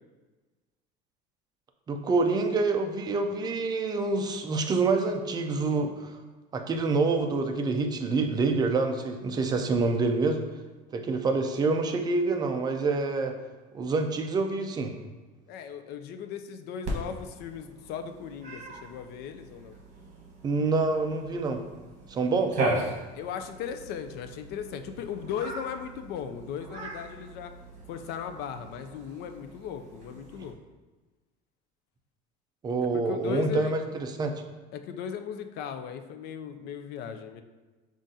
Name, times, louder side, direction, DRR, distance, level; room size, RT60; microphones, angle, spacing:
voice 1, 1.9-6.2 6.5-10.4 10.9-13.3 13.7-14.9 20.4-21.6 22.1-22.6 32.6-34.3, right 3 dB, 20° right, 5 dB, 0.4 m, -27 dB
voice 2, 15.5-19.8 23.1-27.5 27.9-30.6 32.9-33.8 34.7-37.4, left 8 dB, 55° left, 8 dB, 0.4 m, -37 dB
Cat, 16.8-30.5, right 2 dB, 35° right, 1.2 m, -38 dB
7.2 x 2.5 x 2.7 m, 1.3 s
cardioid pair, 140°, 20 cm